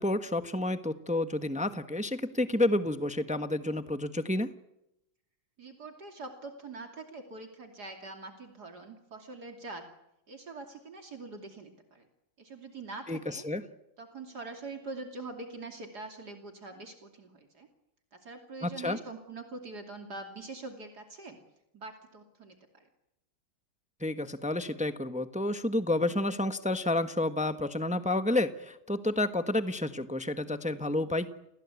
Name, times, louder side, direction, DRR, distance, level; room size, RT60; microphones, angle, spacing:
voice 1, 0.0-4.5 13.1-13.6 18.6-19.0 24.0-31.3, left 1 dB, 5° right, 9 dB, 0.9 m, -30 dB
voice 2, 5.6-9.8 10.3-12.0 12.4-13.4 14.0-17.7 18.1-21.4 21.7-22.9, right 3 dB, 60° right, 4 dB, 3.4 m, -44 dB
29.5 x 21.0 x 8.4 m, 0.87 s
omnidirectional pair, 1.9 m